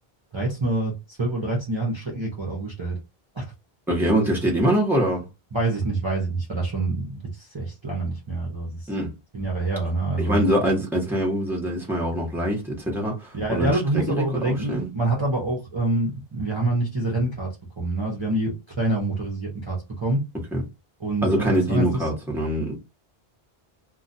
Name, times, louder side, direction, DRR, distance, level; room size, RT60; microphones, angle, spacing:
voice 1, 0.3-3.0 3.3-3.4 5.5-8.9 9.3-10.4 13.3-17.5 17.8-20.2 21.0-22.1, right 2 dB, 30° right, 0.7 m, -26 dB
voice 2, 3.9-5.2 8.9-9.1 10.2-14.9 20.5-20.6 21.2-22.7, equal, ahead, 0.9 m, -24 dB
2.3 x 2.3 x 3.9 m
omnidirectional pair, 1.0 m